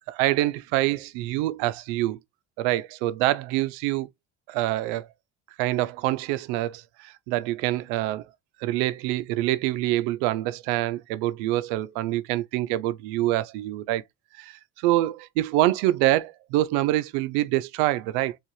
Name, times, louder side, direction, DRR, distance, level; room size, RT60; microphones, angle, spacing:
voice 1, 0.1-2.2 2.6-4.1 4.5-5.1 5.6-8.3 8.6-14.0 14.4-18.4, right 15 dB, 75° right, 0.5 m, -25 dB
4.5 x 2.4 x 3.1 m
supercardioid pair, 80°, 39 cm